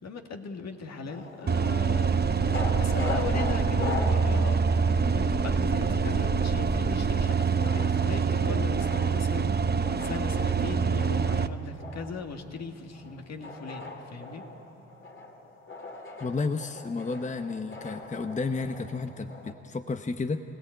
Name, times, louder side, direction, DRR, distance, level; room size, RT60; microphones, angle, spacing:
voice 1, 0.0-2.3 2.8-4.6 4.9-9.6 10.0-14.5, left 4 dB, 55° left, 4 dB, 2.0 m, -39 dB
sound 1, 1.1-19.5, left 2 dB, 40° left, 3.0 m, -41 dB
sound 2, 1.5-11.5, right 5 dB, 30° right, 0.8 m, -25 dB
sound 3, 1.9-7.2, right 2 dB, 10° right, 1.4 m, -33 dB
voice 2, 16.2-20.4, left 4 dB, 20° left, 9 dB, 0.9 m, -32 dB
25.0 x 17.0 x 9.1 m, 2.8 s
hypercardioid pair, 45°, 33 cm